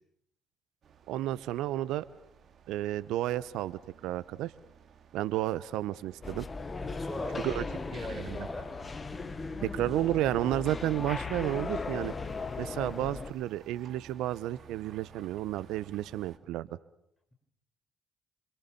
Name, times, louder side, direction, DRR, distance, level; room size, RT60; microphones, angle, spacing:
sound 1, 0.8-16.4, right 8 dB, 55° right, 2.5 m, -56 dB
voice 1, 1.1-2.1 2.7-4.5 5.1-6.5 7.4-7.6 7.9-8.5 9.6-12.1 12.6-16.7, right 14 dB, 70° right, 16 dB, 1.0 m, -32 dB
sound 2, 6.2-13.3, left 4 dB, 30° left, 1.6 m, -37 dB
voice 2, 6.8-8.8, left 1 dB, 15° left, 6 dB, 7.8 m, -41 dB
28.0 x 27.0 x 7.1 m, 0.73 s
hypercardioid pair, 50°, 0 cm